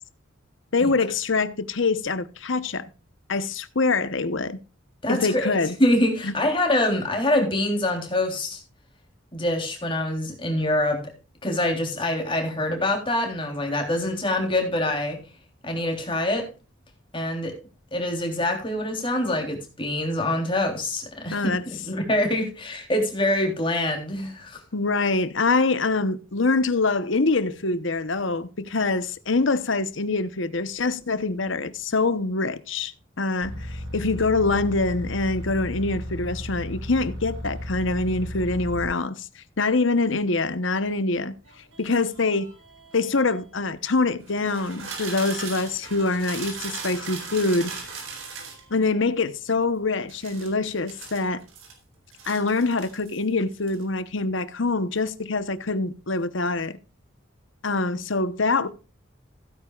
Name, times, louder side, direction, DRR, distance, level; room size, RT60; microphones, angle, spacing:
voice 1, 0.7-2.9 3.3-4.6 5.1-5.7 6.2-6.3 21.3-21.6 24.7-41.3 41.8-42.5 42.9-47.7 48.7-51.4 52.2-56.7 57.6-58.7, left 3 dB, 70° left, 1.0 m, -24 dB
voice 2, 5.0-8.6 9.3-11.0 11.4-15.2 15.6-16.5 17.1-17.5 17.9-21.5 21.8-24.6, left 1 dB, 25° left, 3.4 m, -25 dB
sound 1, 33.4-38.9, equal, 60° right, 4.3 m, -34 dB
sound 2, 41.5-43.4 44.2-48.6 50.1-51.7 52.1-53.2 53.5-53.8, right 5 dB, 80° right, 3.9 m, -38 dB
16.0 x 9.6 x 2.4 m
head